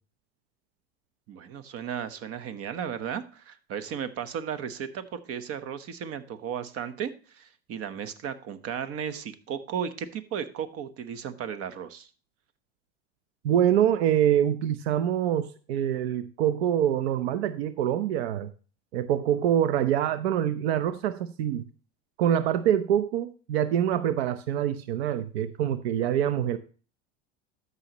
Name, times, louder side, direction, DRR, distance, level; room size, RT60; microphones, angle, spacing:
voice 1, 1.3-12.1, right 8 dB, 50° right, 11 dB, 1.1 m, -35 dB
voice 2, 13.4-18.5 18.9-21.7 22.2-26.6, right 10 dB, 85° right, 12 dB, 0.7 m, -25 dB
13.5 x 5.6 x 2.9 m, 0.37 s
supercardioid pair, 105°, 31 cm